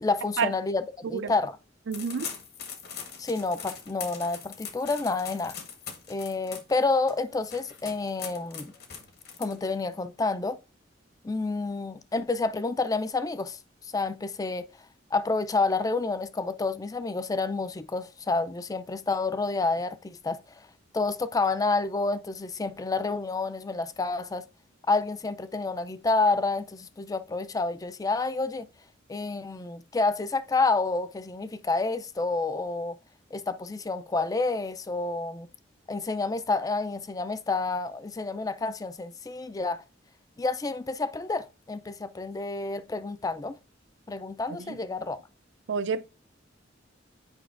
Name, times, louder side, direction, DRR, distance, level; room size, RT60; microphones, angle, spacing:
voice 1, 0.0-1.6 3.2-5.6 6.1-8.7 9.4-10.6 11.2-14.7 15.1-20.7 20.9-24.5 24.9-28.7 29.1-33.0 33.3-35.5 35.9-39.8 40.4-43.6 44.1-45.2, left 3 dB, 20° left, 0.3 m, -29 dB
sound 1, 1.9-9.9, left 7 dB, 55° left, 1.0 m, -42 dB
voice 2, 1.9-2.3 44.6-44.8 45.7-46.0, right 5 dB, 65° right, 0.4 m, -29 dB
8.8 x 5.2 x 2.5 m
head